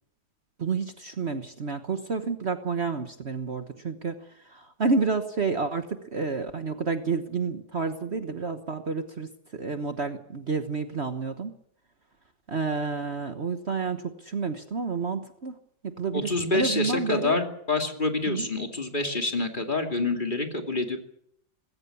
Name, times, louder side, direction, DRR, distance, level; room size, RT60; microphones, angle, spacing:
voice 1, 0.6-4.1 4.4-11.5 12.5-15.6 15.8-17.4 18.3-18.5, right 4 dB, 45° right, 8 dB, 1.4 m, -30 dB
voice 2, 16.1-21.0, left 3 dB, 30° left, 4 dB, 2.7 m, -27 dB
20.5 x 16.5 x 8.5 m, 0.70 s
omnidirectional pair, 1.7 m